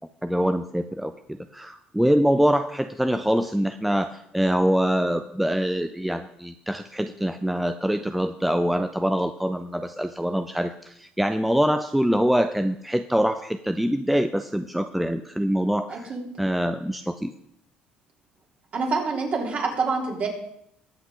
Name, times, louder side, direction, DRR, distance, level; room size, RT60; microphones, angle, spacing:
voice 1, 0.2-17.3, equal, 5° right, 9 dB, 0.5 m, -24 dB
voice 2, 15.9-16.3 18.7-20.3, right 4 dB, 45° right, -1 dB, 3.6 m, -26 dB
21.0 x 8.0 x 3.8 m, 0.72 s
cardioid pair, 110°, 4 cm